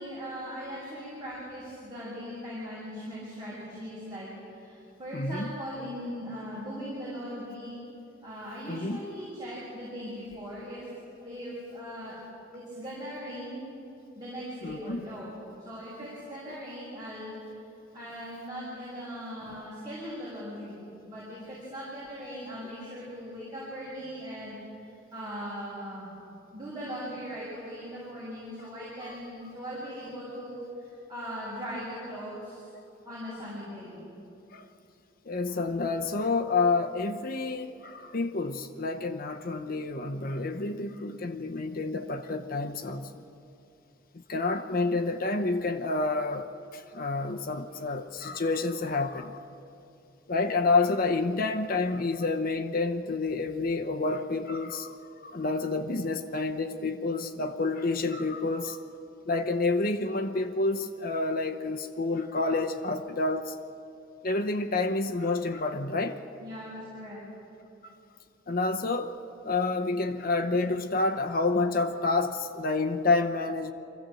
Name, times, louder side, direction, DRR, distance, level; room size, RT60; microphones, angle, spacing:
voice 1, 0.0-7.8 8.2-10.9 11.2-12.2 12.5-13.6 14.1-17.6 17.9-26.1 26.5-32.7 33.0-34.0 66.0-66.1 66.4-67.2, equal, 20° right, -9 dB, 6.4 m, -39 dB
voice 2, 5.1-5.5 8.7-9.0 14.6-15.0 29.1-29.2 34.5-34.7 35.2-43.2 44.1-49.4 50.3-58.8 59.3-63.5 64.2-66.2 68.5-69.2 69.4-73.7, left 3 dB, 50° left, 7 dB, 0.8 m, -29 dB
24.5 x 16.0 x 7.7 m, 2.7 s
head